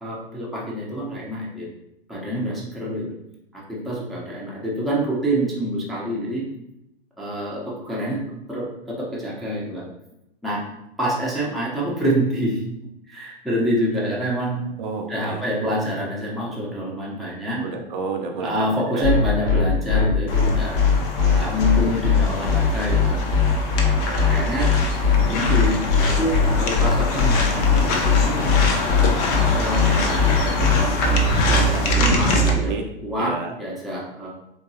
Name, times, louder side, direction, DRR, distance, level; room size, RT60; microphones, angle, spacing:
voice 1, 0.0-1.7 2.1-3.1 3.5-6.4 7.2-8.2 8.5-9.8 10.4-10.6 11.0-12.6 13.0-14.7 15.1-17.6 18.4-20.7 21.4-23.2 24.3-24.7 25.2-28.5 29.3-30.8 31.5-32.7 33.0-34.3, equal, ahead, -6 dB, 0.8 m, -26 dB
voice 2, 14.8-15.4 17.6-19.0 21.2-21.6 23.8-24.4 32.4-32.8 33.2-33.5, right 4 dB, 55° right, 3 dB, 0.6 m, -31 dB
sound 1, 19.0-32.5, left 4 dB, 80° left, 1.1 m, -19 dB
sound 2, 20.3-32.5, left 3 dB, 40° left, 0.6 m, -25 dB
3.6 x 2.6 x 2.8 m, 0.85 s
figure-of-eight pair, 95°, 30 cm